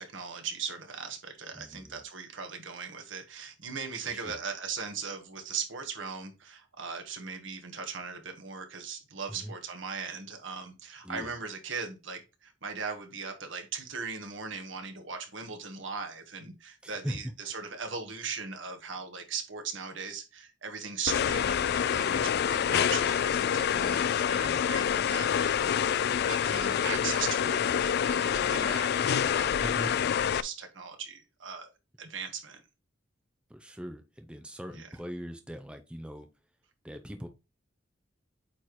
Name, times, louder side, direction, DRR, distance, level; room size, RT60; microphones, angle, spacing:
voice 1, 0.0-30.0 30.3-31.7 32.0-32.6 34.7-34.9, right 5 dB, 75° right, 1.6 m, -39 dB
voice 2, 1.5-2.0 4.0-4.4 9.3-9.5 11.0-11.3 16.8-17.2 24.4-24.6 29.6-29.9 33.5-36.3 36.8-37.3, equal, 5° right, 0.7 m, -40 dB
sound 1, 21.1-30.4, left 8 dB, 55° left, 0.4 m, -27 dB
8.6 x 4.4 x 3.2 m
head